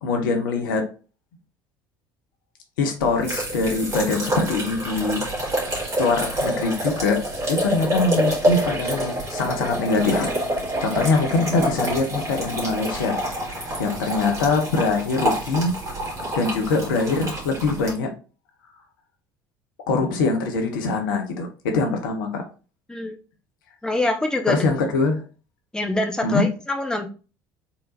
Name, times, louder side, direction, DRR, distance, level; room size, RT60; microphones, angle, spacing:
voice 1, 0.0-0.9 2.8-5.2 6.0-7.2 7.5-10.3 10.8-15.7 16.3-18.1 19.9-22.5 24.5-25.2 26.2-26.4, left 3 dB, 65° left, 4 dB, 0.9 m, -23 dB
sound 1, 3.0-17.9, right 1 dB, 25° right, 2.2 m, -27 dB
voice 2, 23.8-24.7 25.7-27.1, left 2 dB, 5° left, 4 dB, 0.8 m, -24 dB
4.3 x 3.7 x 2.7 m, 0.35 s
figure-of-eight pair, 60°, 12 cm